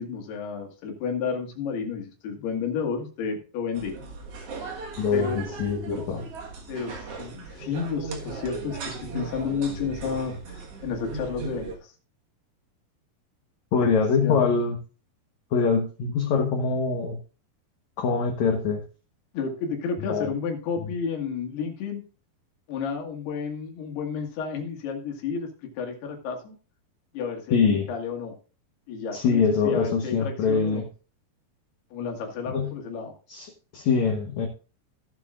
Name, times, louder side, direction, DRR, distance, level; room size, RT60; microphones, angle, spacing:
voice 1, 0.0-4.0 5.1-5.4 6.7-11.9 13.8-13.9 14.2-14.4 19.3-22.0 22.7-26.6 27.1-28.3 28.9-30.9 31.9-33.1, left 6 dB, 80° left, 2 dB, 3.9 m, -31 dB
sound 1, 3.7-11.7, right 3 dB, 55° right, 1.8 m, -37 dB
voice 2, 5.0-6.3 13.7-14.8 15.5-17.2 18.0-18.8 20.0-20.3 27.5-27.9 29.1-30.9 32.5-32.7 33.3-34.5, left 5 dB, 65° left, 3 dB, 2.0 m, -24 dB
16.0 x 7.5 x 2.5 m, 0.35 s
omnidirectional pair, 4.6 m